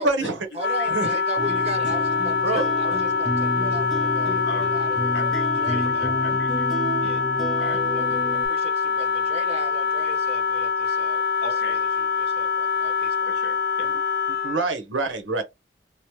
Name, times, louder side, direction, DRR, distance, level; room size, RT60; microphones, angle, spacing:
voice 1, 0.0-0.5 0.9-1.2 2.4-2.6 14.4-15.4, right 3 dB, 85° right, 0.9 m, -25 dB
voice 2, 0.5-6.2 7.0-7.2 7.6-13.3, right 1 dB, 35° right, 0.6 m, -38 dB
Wind instrument woodwind instrument, 0.6-14.7, left 5 dB, 55° left, 0.3 m, -24 dB
sound 1, 1.4-8.5, equal, ahead, 0.8 m, -30 dB
voice 3, 2.6-3.0 4.4-4.7 5.1-6.8 7.6-7.8 11.4-11.8 13.3-14.0, left 2 dB, 70° left, 0.7 m, -38 dB
2.9 x 2.0 x 3.0 m
head